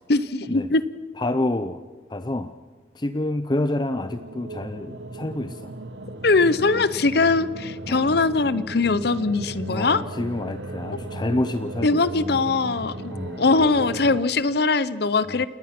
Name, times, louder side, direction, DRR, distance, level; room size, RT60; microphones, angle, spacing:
voice 1, 0.1-0.8 6.2-10.0 11.8-13.1 13.4-15.5, left 3 dB, 60° left, 16 dB, 0.8 m, -21 dB
voice 2, 1.2-1.8 2.1-2.5 3.0-5.6 7.9-8.0 9.7-12.0 13.1-13.4 15.3-15.5, left 1 dB, 25° left, 10 dB, 0.6 m, -28 dB
sound 1, 3.9-14.2, right 2 dB, 80° right, 1.4 m, -36 dB
28.0 x 20.0 x 6.0 m, 1.4 s
head